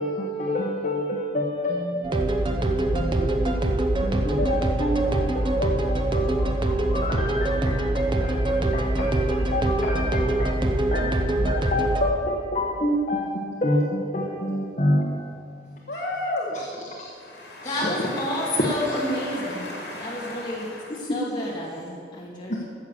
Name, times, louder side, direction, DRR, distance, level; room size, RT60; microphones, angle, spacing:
voice 1, 0.0-15.2 16.8-17.1 17.6-17.9 18.6-18.9 22.5-22.6, left 1 dB, 40° left, -2 dB, 1.3 m, -28 dB
sound 1, 2.0-12.0, right 1 dB, 30° right, 1.0 m, -23 dB
voice 2, 15.9-16.6 17.0-21.2, left 1 dB, 65° left, -2 dB, 3.5 m, -34 dB
voice 3, 17.6-20.7 21.0-22.6, left 1 dB, 25° left, -5 dB, 2.5 m, -30 dB
14.0 x 8.5 x 6.9 m, 2.3 s
head